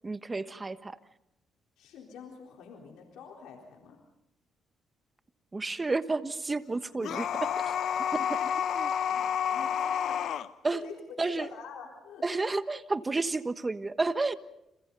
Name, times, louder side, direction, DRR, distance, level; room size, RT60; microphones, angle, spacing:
voice 1, 0.0-1.0 5.5-7.7 8.1-8.9 10.6-10.8 11.2-11.5 12.2-14.4, right 3 dB, 25° right, 11 dB, 1.3 m, -31 dB
voice 2, 1.8-4.0 9.1-12.3, left 6 dB, 90° left, 0 dB, 3.9 m, -46 dB
sound 1, 7.0-10.5, left 8 dB, 70° left, 0.9 m, -30 dB
29.5 x 28.0 x 4.0 m, 0.85 s
cardioid pair, 90°, 0 cm